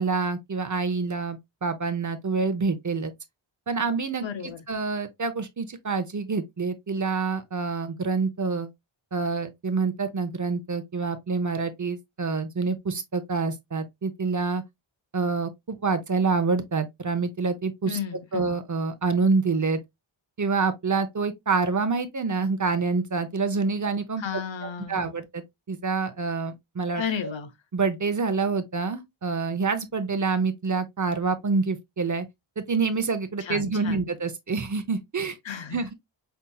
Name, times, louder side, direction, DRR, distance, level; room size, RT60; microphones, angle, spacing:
voice 1, 0.0-3.1 3.7-8.7 9.1-14.6 15.1-18.0 18.3-19.8 20.4-24.2 24.6-27.3 27.7-32.3 32.6-35.4 35.7-35.9, right 4 dB, 40° right, 0.7 m, -27 dB
voice 2, 4.2-4.6 17.9-18.5 24.2-25.1 27.0-27.5 33.4-34.1 35.4-35.8, left 7 dB, 65° left, 0.8 m, -33 dB
5.6 x 2.6 x 2.3 m
wide cardioid pair, 80°, 49 cm